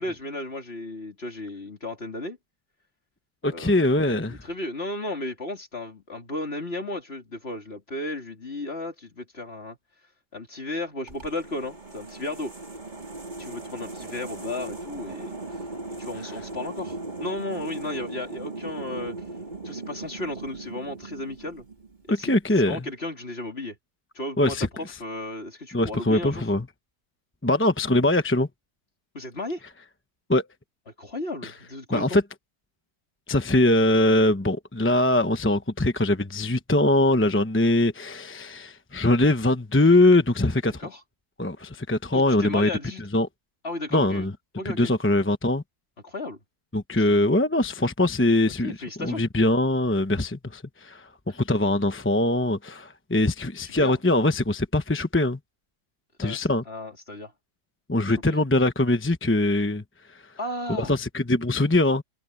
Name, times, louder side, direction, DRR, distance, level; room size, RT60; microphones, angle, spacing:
voice 1, 0.0-2.4 3.5-9.8 10.3-12.5 13.4-15.6 16.0-19.2 19.6-21.7 22.1-23.8 24.2-26.5 29.1-29.6 30.9-32.2 40.8-41.0 42.1-43.0 43.6-44.3 44.6-44.9 46.0-46.4 48.6-49.2 53.6-54.0 56.2-57.3 58.3-58.4 60.4-61.0, left 2 dB, 40° left, 3.4 m, -34 dB
voice 2, 3.4-4.4 22.1-22.8 24.4-24.7 25.7-26.6 27.4-28.5 30.3-30.5 31.4-31.5 31.9-32.2 33.3-40.8 41.4-42.7 43.1-43.3 43.9-44.3 44.8-45.6 46.7-55.4 56.2-56.6 57.9-59.8 60.8-62.0, left 1 dB, 10° left, 0.7 m, -22 dB
sound 1, 11.1-22.2, right 2 dB, 30° right, 3.8 m, -38 dB
omnidirectional pair, 1.6 m